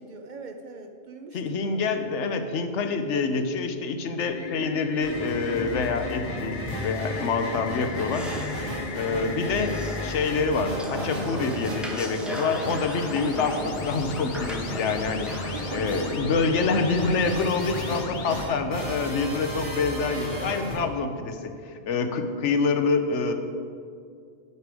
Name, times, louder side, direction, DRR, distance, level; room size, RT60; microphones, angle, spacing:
voice 1, 0.0-2.0 6.1-6.7 9.2-9.5 15.5-16.3, right 3 dB, 50° right, 5 dB, 0.6 m, -41 dB
voice 2, 1.3-8.3 8.9-9.8 10.0-15.3 15.7-23.3, left 4 dB, 80° left, 7 dB, 1.0 m, -26 dB
sound 1, 4.2-10.5 12.0-18.4, left 6 dB, 55° left, 0.6 m, -38 dB
sound 2, 5.0-20.7, equal, 80° right, 2.7 m, -34 dB
sound 3, 7.8-16.2, equal, ahead, 0.9 m, -38 dB
9.7 x 6.7 x 4.8 m, 2.3 s
omnidirectional pair, 1.2 m